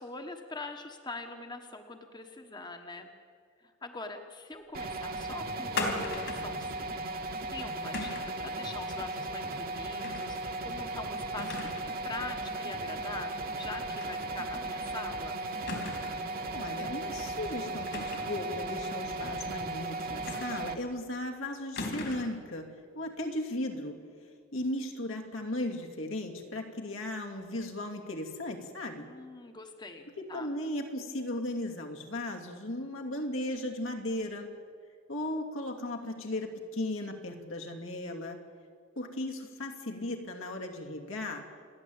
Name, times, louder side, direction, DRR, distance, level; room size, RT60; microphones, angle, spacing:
voice 1, 0.0-3.1 3.6-7.0 7.5-15.4 29.0-30.5, left 3 dB, 20° left, 5 dB, 1.3 m, -43 dB
sound 1, 4.7-20.7, right 2 dB, 50° right, 1.5 m, -36 dB
sound 2, 5.8-6.6 7.9-8.4 10.0-10.4 10.7-10.8 11.4-11.9 12.3-12.4 14.0-14.2 14.5-14.6 15.7-16.3 17.9-18.4 20.3-20.8 21.8-22.4, left 2 dB, 65° left, 3.5 m, -37 dB
voice 2, 16.5-24.0 24.2-29.1 30.2-34.5 35.1-38.4 39.0-41.5, left 1 dB, 80° left, 2 dB, 2.7 m, -36 dB
29.0 x 11.0 x 8.8 m, 2.1 s
head